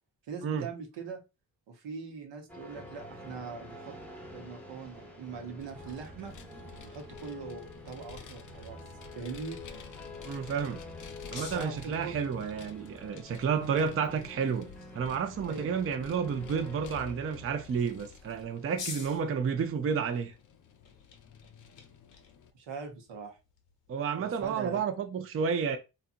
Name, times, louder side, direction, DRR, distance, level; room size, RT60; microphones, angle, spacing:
voice 1, 0.3-1.2 1.7-3.9 4.3-6.3 6.8-8.8 9.1-9.6 11.3-12.2 15.5-15.9 22.5-23.4 24.2-24.8, right 5 dB, 75° right, 0.8 m, -42 dB
sound 1, 2.5-19.3, left 1 dB, 5° left, 0.8 m, -48 dB
Vehicle, 5.6-22.5, left 7 dB, 45° left, 0.5 m, -51 dB
sound 2, 10.0-24.5, left 5 dB, 75° left, 0.8 m, -51 dB
voice 2, 10.2-10.8 11.3-14.7 14.9-20.3 23.9-25.8, right 6 dB, 35° right, 0.4 m, -31 dB
2.8 x 2.4 x 2.4 m
cardioid pair, 50°, 43 cm